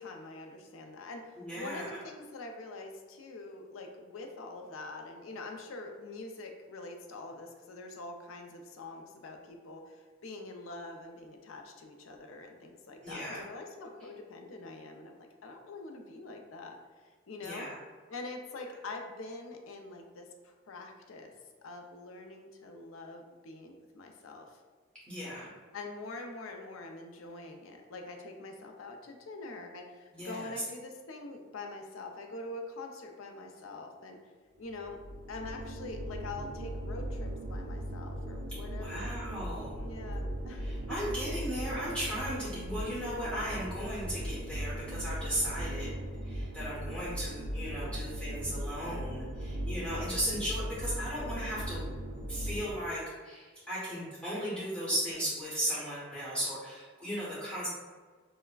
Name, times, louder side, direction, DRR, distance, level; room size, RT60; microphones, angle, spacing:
voice 1, 0.0-16.8 17.3-17.7 18.1-21.3 21.6-24.6 25.7-34.2 34.6-35.0 35.3-39.1 39.8-40.6 47.8-48.0, left 2 dB, 80° left, 4 dB, 0.5 m, -44 dB
voice 2, 1.4-1.9 13.0-13.4 17.4-17.8 25.1-25.5 30.1-30.5 38.8-39.9 40.5-45.9 46.2-51.8 52.3-57.7, equal, 5° left, -8 dB, 1.1 m, -36 dB
sound 1, 34.7-52.7, equal, 80° right, 0.5 m, -38 dB
5.5 x 2.1 x 2.3 m, 1.5 s
head